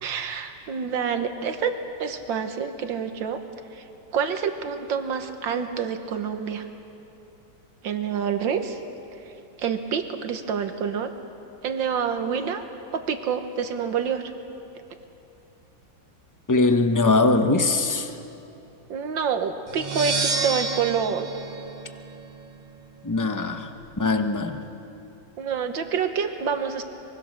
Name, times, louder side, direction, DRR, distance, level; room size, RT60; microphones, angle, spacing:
voice 1, 0.0-1.7 2.0-3.4 3.7-3.8 4.1-6.7 7.8-8.8 9.6-11.1 11.6-12.6 12.9-14.3 18.9-21.3 25.4-26.8, right 6 dB, 85° right, 7 dB, 2.0 m, -27 dB
voice 2, 16.5-18.1 23.0-23.7 24.0-24.6, left 3 dB, 20° left, 6 dB, 0.5 m, -21 dB
sound 1, 19.7-22.5, right 4 dB, 60° right, 0.4 m, -29 dB
24.0 x 23.0 x 6.5 m, 2.9 s
omnidirectional pair, 2.0 m